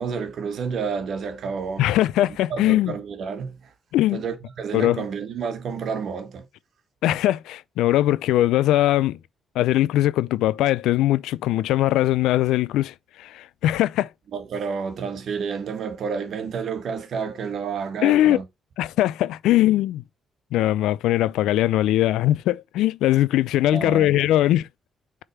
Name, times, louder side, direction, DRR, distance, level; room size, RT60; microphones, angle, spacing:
voice 1, 0.0-1.9 2.5-3.6 4.1-6.4 14.3-18.4 23.7-24.2, right 6 dB, 60° right, 1.4 m, -30 dB
voice 2, 1.8-3.0 3.9-4.2 4.7-5.0 7.0-9.2 9.5-14.1 18.0-18.4 18.8-20.0 20.5-24.7, left 14 dB, 90° left, 0.4 m, -21 dB
6.5 x 3.6 x 4.4 m
cardioid pair, 90°, 0 cm